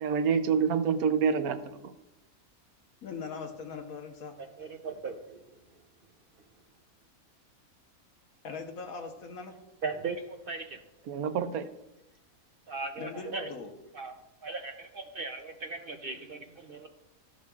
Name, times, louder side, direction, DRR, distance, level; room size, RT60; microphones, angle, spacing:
voice 1, 0.0-1.9 11.1-11.7, right 6 dB, 85° right, 10 dB, 1.2 m, -27 dB
voice 2, 3.0-4.4 8.4-9.6 13.0-13.7, left 5 dB, 75° left, 4 dB, 1.4 m, -40 dB
voice 3, 4.6-5.4 9.8-10.8 12.7-13.5 13.9-14.1 14.4-16.9, right 4 dB, 60° right, 5 dB, 0.6 m, -38 dB
13.0 x 6.5 x 2.4 m, 0.92 s
omnidirectional pair, 1.5 m